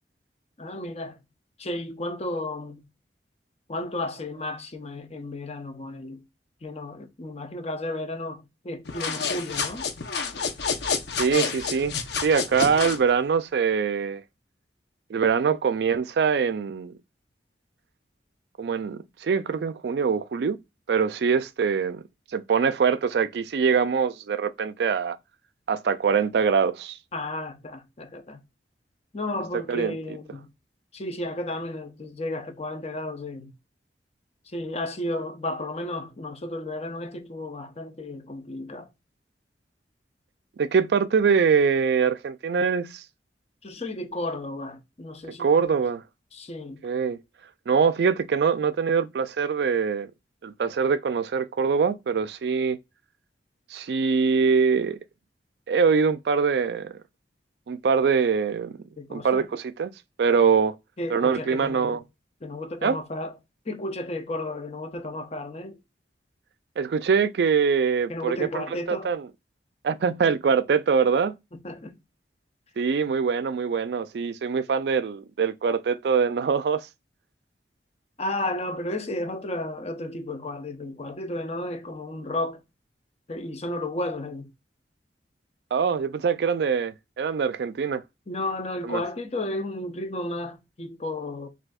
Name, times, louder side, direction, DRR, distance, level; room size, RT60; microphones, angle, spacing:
voice 1, 0.6-1.2 1.6-2.8 3.7-6.2 6.6-9.9 27.1-28.4 29.1-30.5 30.9-33.5 34.5-38.9 43.6-45.7 46.3-46.8 59.0-59.5 61.0-62.0 62.4-63.4 63.7-65.8 68.1-69.1 71.5-72.0 78.2-82.6 83.3-84.5 88.3-91.5, left 1 dB, 35° left, 0.7 m, -33 dB
sound 1, 8.9-13.0, left 5 dB, 70° left, 0.8 m, -29 dB
voice 2, 11.2-11.9 12.2-14.2 15.1-16.9 18.6-20.6 20.9-22.0 22.3-25.2 25.7-27.0 29.7-30.0 40.6-43.0 45.4-46.0 46.8-47.2 47.7-50.1 50.4-52.8 53.7-55.0 55.7-56.9 57.7-58.8 59.1-59.9 60.2-60.8 61.1-62.0 62.8-63.0 66.8-69.3 69.8-71.4 72.8-76.9 85.7-88.0 88.8-89.0, right 6 dB, 65° right, 0.4 m, -23 dB
6.1 x 2.7 x 2.3 m
head